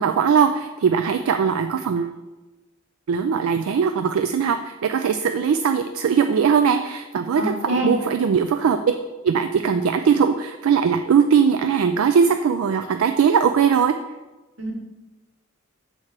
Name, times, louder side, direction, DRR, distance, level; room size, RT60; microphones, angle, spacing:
voice 1, 0.0-2.2 3.1-8.9 9.2-14.0, right 6 dB, 85° right, 7 dB, 0.4 m, -20 dB
voice 2, 7.3-7.9 14.6-14.7, right 1 dB, 65° right, 0 dB, 1.6 m, -25 dB
6.5 x 4.3 x 5.9 m, 1.1 s
head